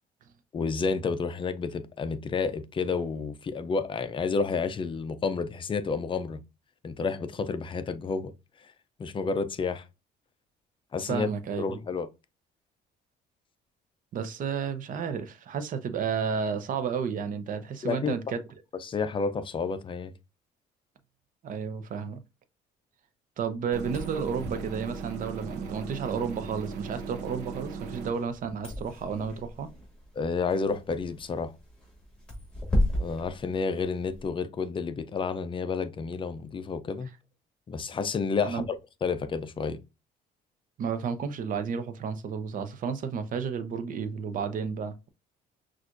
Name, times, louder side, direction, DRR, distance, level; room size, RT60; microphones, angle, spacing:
voice 1, 0.5-6.4 6.8-8.3 9.0-9.8 10.9-11.3 11.6-12.1 17.8-18.1 18.8-20.1 30.2-31.5 33.0-37.1 37.7-38.6 39.0-39.8, left 5 dB, 30° left, 0.5 m, -30 dB
voice 2, 11.0-11.8 14.1-18.4 21.4-22.2 23.4-29.7 38.4-38.7 40.8-45.1, right 6 dB, 50° right, 0.7 m, -32 dB
sound 1, 23.7-28.1, right 4 dB, 90° right, 0.7 m, -38 dB
sound 2, 23.8-34.3, left 1 dB, 5° left, 2.1 m, -35 dB
6.0 x 2.5 x 2.5 m
cardioid pair, 110°, 17 cm